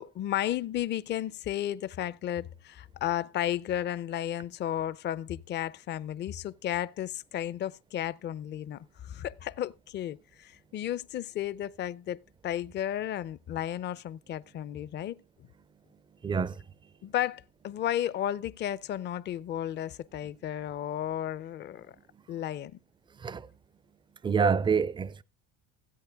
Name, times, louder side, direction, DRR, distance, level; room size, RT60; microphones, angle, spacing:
voice 1, 0.0-12.2 12.4-15.2 17.0-21.9 22.3-22.8, left 11 dB, 35° left, 0.5 m, -33 dB
voice 2, 16.2-16.5 23.2-23.4 24.2-25.2, right 6 dB, 15° right, 0.5 m, -26 dB
16.0 x 8.1 x 3.4 m
cardioid pair, 120°, 30 cm